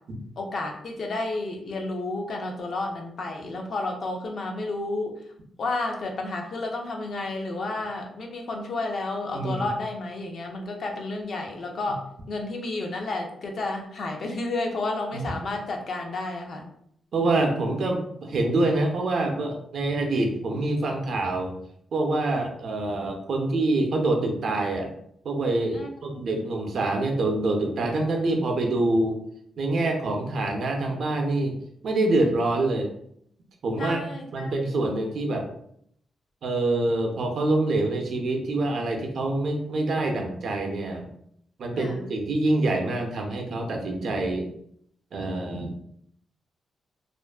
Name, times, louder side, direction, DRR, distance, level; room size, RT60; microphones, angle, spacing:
voice 1, 0.4-5.1 5.6-12.0 12.3-16.7 25.7-26.4 33.8-34.8 41.7-42.1, left 2 dB, 60° left, 2 dB, 0.5 m, -31 dB
voice 2, 9.3-9.7 15.1-15.2 17.1-21.5 21.9-24.9 25.2-29.2 29.6-31.5 31.8-32.9 33.6-34.0 34.3-35.5 36.4-41.1 41.6-44.5 45.1-45.7, right 2 dB, 65° right, 2 dB, 0.5 m, -26 dB
2.4 x 2.3 x 2.2 m, 0.69 s
cardioid pair, 120°, 0 cm